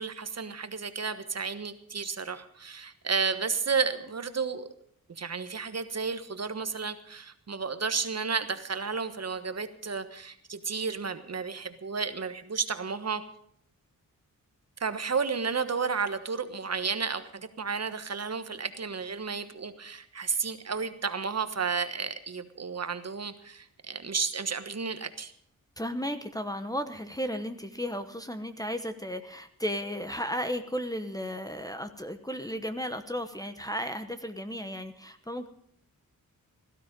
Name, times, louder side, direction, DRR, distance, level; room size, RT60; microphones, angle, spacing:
voice 1, 0.0-4.7 5.1-13.2 14.8-25.3, right 5 dB, 50° right, 10 dB, 1.3 m, -32 dB
voice 2, 25.8-35.5, equal, 10° left, 8 dB, 1.0 m, -34 dB
17.0 x 12.5 x 5.2 m, 0.68 s
cardioid pair, 70°, 34 cm